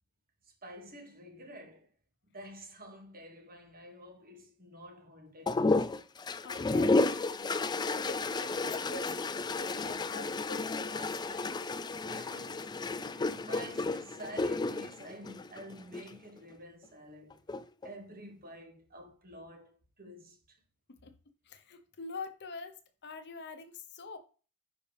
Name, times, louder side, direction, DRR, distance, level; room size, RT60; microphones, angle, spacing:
voice 1, 0.4-1.9 2.3-5.9 12.1-17.4 17.8-20.6, right 1 dB, 40° right, 2.2 m, -50 dB
sound 1, 5.5-16.1 17.3-17.9, left 3 dB, 20° left, 0.3 m, -32 dB
voice 2, 6.4-11.5 21.0-21.1 21.4-24.2, left 3 dB, 50° left, 1.0 m, -46 dB
10.5 x 5.0 x 3.4 m
head